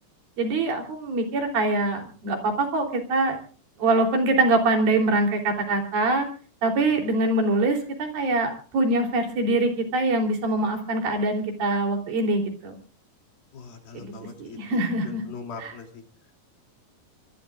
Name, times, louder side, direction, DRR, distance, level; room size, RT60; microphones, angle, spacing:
voice 1, 0.4-3.4 3.8-6.3 6.6-12.8 13.9-14.1 14.4-15.2 15.6-15.7, right 2 dB, 85° right, 3 dB, 5.2 m, -24 dB
voice 2, 13.5-16.0, left 4 dB, 85° left, 4 dB, 4.8 m, -41 dB
26.0 x 20.5 x 2.5 m, 0.40 s
omnidirectional pair, 4.1 m